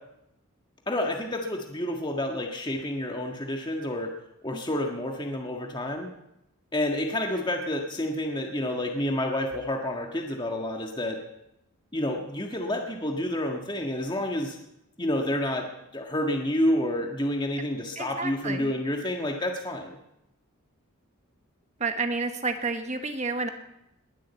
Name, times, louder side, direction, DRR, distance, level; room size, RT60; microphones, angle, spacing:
voice 1, 0.9-4.1 4.4-6.1 6.7-11.2 11.9-14.6 15.0-15.6 15.9-20.0, left 1 dB, 20° left, 2 dB, 1.6 m, -29 dB
voice 2, 18.0-18.7 21.8-23.5, right 3 dB, 30° right, 7 dB, 1.2 m, -30 dB
21.0 x 7.7 x 8.1 m, 0.85 s
head